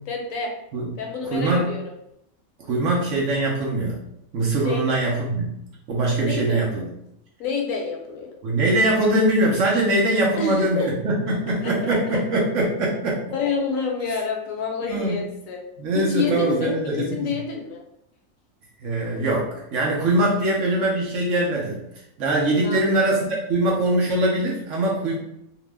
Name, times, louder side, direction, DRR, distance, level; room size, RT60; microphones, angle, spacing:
voice 1, 0.1-0.5 1.0-1.8 4.6-5.0 6.2-6.9 7.4-8.3 10.4-10.9 11.6-12.0 13.3-15.6 15.9-17.8 22.6-23.1, left 4 dB, 70° left, 1 dB, 1.0 m, -28 dB
voice 2, 1.2-1.7 2.6-4.0 4.3-5.5 5.9-6.9 8.4-13.2 14.1-14.2 14.9-15.2 15.8-17.3 18.8-21.8 22.2-25.2, right 1 dB, 65° right, -3 dB, 0.9 m, -22 dB
2.8 x 2.0 x 3.2 m, 0.78 s
omnidirectional pair, 1.5 m